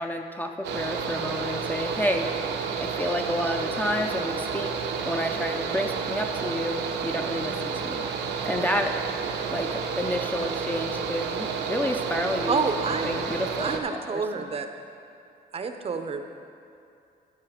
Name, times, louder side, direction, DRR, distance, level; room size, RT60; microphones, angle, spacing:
voice 1, 0.0-4.7 5.1-8.1 8.4-9.0 9.5-12.6 13.0-13.8 14.1-14.5, left 1 dB, 10° left, 4 dB, 0.4 m, -30 dB
Mechanical fan, 0.6-13.8, right 5 dB, 80° right, 0.8 m, -30 dB
voice 2, 12.5-13.1 13.6-14.7 15.5-16.2, right 5 dB, 35° right, 7 dB, 0.6 m, -28 dB
12.0 x 5.6 x 5.0 m, 2.6 s
cardioid pair, 120°, 17 cm